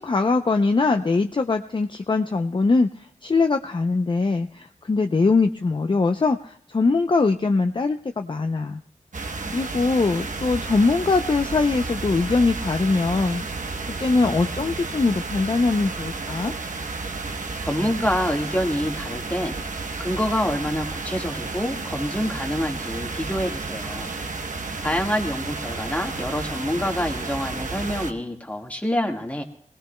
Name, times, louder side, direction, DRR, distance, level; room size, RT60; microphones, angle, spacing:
voice 1, 0.0-8.8 9.5-13.7 14.0-16.5, left 3 dB, 40° left, 6 dB, 0.5 m, -22 dB
sound 1, 9.1-28.1, right 3 dB, 80° right, 1.0 m, -32 dB
voice 2, 17.6-19.5 20.0-24.1 24.8-29.4, equal, 10° left, 2 dB, 1.7 m, -26 dB
22.0 x 18.5 x 2.2 m, 0.63 s
wide cardioid pair, 85°, 13 cm